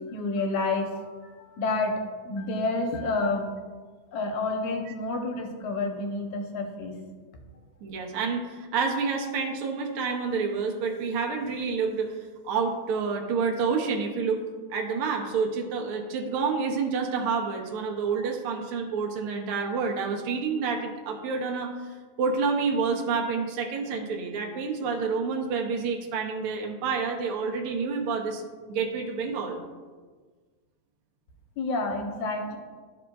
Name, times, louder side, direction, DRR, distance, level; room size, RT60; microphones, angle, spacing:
voice 1, 0.1-3.5 4.1-7.0 31.6-32.6, left 3 dB, 85° left, 3 dB, 2.3 m, -29 dB
voice 2, 7.8-12.2 12.4-14.4 14.7-28.4 28.7-29.6, right 5 dB, 70° right, 1 dB, 1.3 m, -28 dB
12.0 x 5.0 x 2.3 m, 1.4 s
omnidirectional pair, 3.3 m